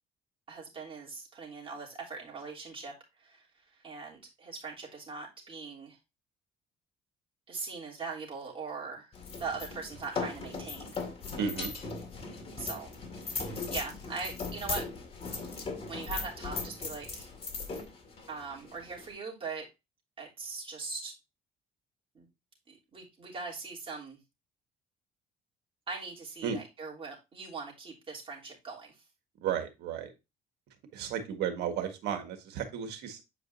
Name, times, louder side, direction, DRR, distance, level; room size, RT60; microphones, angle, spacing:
voice 1, 0.5-3.5 3.8-6.0 7.5-9.1 9.4-11.0 12.6-14.8 15.9-17.3 18.3-19.6 20.2-21.1 22.1-22.3 22.7-24.2 25.9-29.0, right 4 dB, 30° right, -3 dB, 3.1 m, -41 dB
sound 1, 9.1-19.1, left 4 dB, 35° left, 2.2 m, -38 dB
voice 2, 11.4-11.7 26.4-26.6 29.4-30.1 30.9-33.2, right 8 dB, 80° right, 6 dB, 1.6 m, -33 dB
8.3 x 5.0 x 2.6 m, 0.25 s
cardioid pair, 110°, 17 cm